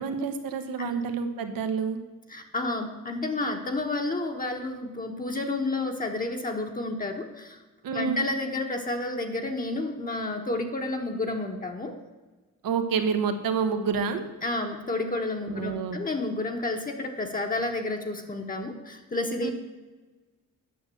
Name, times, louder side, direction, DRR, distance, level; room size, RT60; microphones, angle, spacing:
voice 1, 0.0-2.0 7.8-8.3 12.6-14.3 15.5-16.0 19.4-19.5, right 6 dB, 85° right, 7 dB, 1.3 m, -28 dB
voice 2, 2.3-7.6 7.9-11.9 13.9-14.0 14.4-19.5, left 2 dB, 25° left, 2 dB, 1.1 m, -30 dB
10.0 x 6.4 x 7.6 m, 1.2 s
cardioid pair, 125°, 33 cm